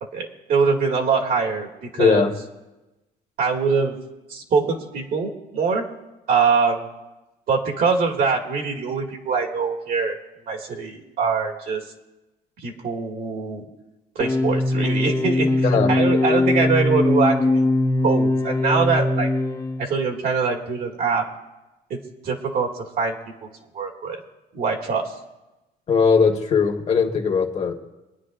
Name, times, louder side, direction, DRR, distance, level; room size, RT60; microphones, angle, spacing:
voice 1, 0.0-2.3 3.4-4.0 4.3-5.9 6.3-6.9 7.5-10.2 10.5-11.9 12.6-13.6 14.2-17.7 18.0-19.3 19.8-21.3 21.9-24.2 24.5-25.1, right 5 dB, 60° right, 0 dB, 2.1 m, -23 dB
voice 2, 2.0-2.3 15.6-15.9 25.9-27.8, left 5 dB, 40° left, 2 dB, 1.6 m, -19 dB
sound 1, 14.2-19.9, left 2 dB, 15° left, 0.6 m, -21 dB
26.0 x 9.7 x 2.5 m, 1.0 s
cardioid pair, 110°, 17 cm